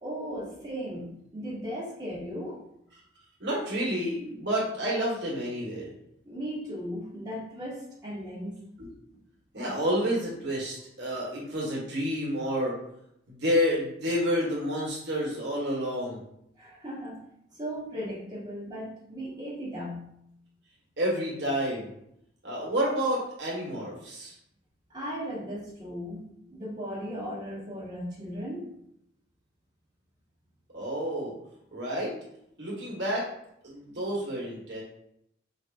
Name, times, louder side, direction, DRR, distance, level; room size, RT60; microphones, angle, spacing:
voice 1, 0.0-2.6 6.2-8.6 16.6-17.2 17.5-20.1 24.9-28.7, equal, 25° right, -7 dB, 1.5 m, -37 dB
voice 2, 3.4-5.9 8.8-8.9 9.5-12.8 13.3-16.2 21.0-21.9 22.4-24.3 30.7-31.3 31.7-32.1 32.6-33.3 33.6-34.8, equal, 70° right, -4 dB, 1.4 m, -29 dB
4.7 x 2.5 x 3.4 m, 0.75 s
head